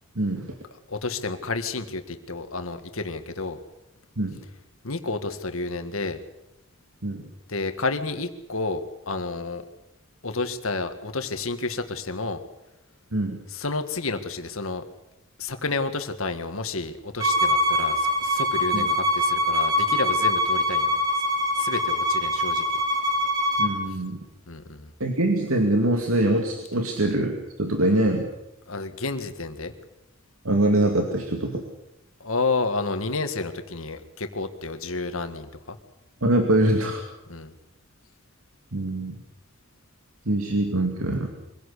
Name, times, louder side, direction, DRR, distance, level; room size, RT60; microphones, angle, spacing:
voice 1, 0.2-0.5 4.2-4.4 7.0-7.2 13.1-13.4 18.7-18.9 23.6-24.2 25.0-28.3 30.4-31.6 36.2-37.0 38.7-39.1 40.3-41.3, right 1 dB, 85° right, 3 dB, 2.5 m, -23 dB
voice 2, 0.9-3.6 4.8-6.2 7.5-9.6 10.2-12.4 13.5-14.8 15.4-21.0 21.6-22.6 24.5-24.9 28.7-29.7 32.2-35.8 37.3-37.5, left 3 dB, 75° left, 8 dB, 1.9 m, -30 dB
Bowed string instrument, 17.2-23.7, left 1 dB, 20° right, 2.9 m, -23 dB
24.0 x 17.0 x 8.3 m, 0.91 s
head